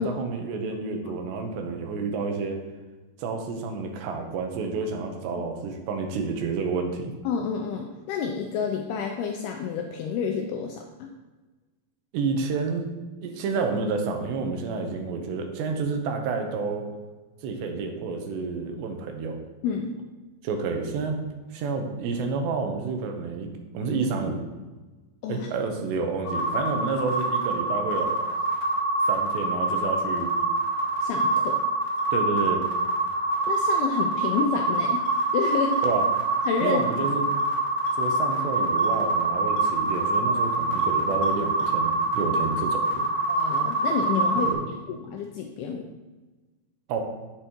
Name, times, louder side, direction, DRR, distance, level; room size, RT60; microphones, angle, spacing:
voice 1, 0.0-2.6 3.2-7.1 12.1-12.9 13.2-16.9 17.4-19.4 20.4-21.2 21.5-24.4 25.3-28.3 29.1-30.3 32.1-32.6 35.8-36.1 36.6-37.4 38.0-43.0 44.4-44.7 46.9-47.0, right 4 dB, 80° right, 3 dB, 3.2 m, -29 dB
voice 2, 7.3-11.1 19.6-20.0 25.2-25.5 31.0-31.6 33.5-35.0 35.3-35.8 36.5-36.8 43.3-44.5 44.9-45.9, left 6 dB, 85° left, 3 dB, 2.3 m, -29 dB
sound 1, 26.2-44.5, right 2 dB, 55° left, 1.8 m, -25 dB
10.0 x 8.1 x 3.0 m, 1.2 s
omnidirectional pair, 5.1 m